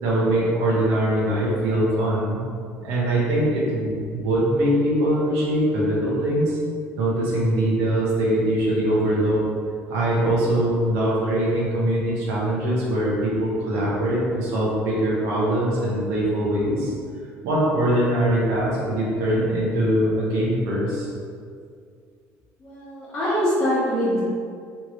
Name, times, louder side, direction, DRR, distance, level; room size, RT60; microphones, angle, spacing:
voice 1, 0.0-2.4 2.8-6.6 7.0-9.4 9.9-16.9 17.4-21.1, right 1 dB, 90° right, -6 dB, 1.2 m, -22 dB
voice 2, 22.6-24.2, equal, 20° left, -14 dB, 1.3 m, -23 dB
3.4 x 3.2 x 4.5 m, 2.2 s
cardioid pair, 180°, 5 cm